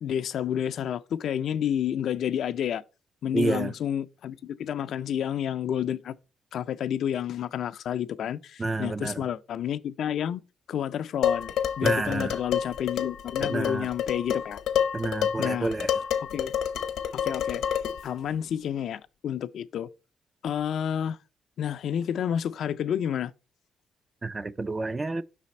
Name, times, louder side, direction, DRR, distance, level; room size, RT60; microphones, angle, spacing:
voice 1, 0.0-2.8 3.2-6.2 6.5-10.4 10.7-14.6 15.4-15.7 16.3-16.5 17.1-17.6 18.0-19.9 20.4-21.2 21.6-23.3, left 9 dB, 70° left, 0.3 m, -30 dB
voice 2, 3.3-3.7 8.6-9.2 11.8-12.4 13.4-13.9 14.9-15.9 24.2-25.2, right 2 dB, 25° right, 0.4 m, -29 dB
Dishes pots and pans, 11.2-18.1, left 9 dB, 85° left, 0.7 m, -28 dB
5.7 x 4.1 x 4.2 m
cardioid pair, 90°, 0 cm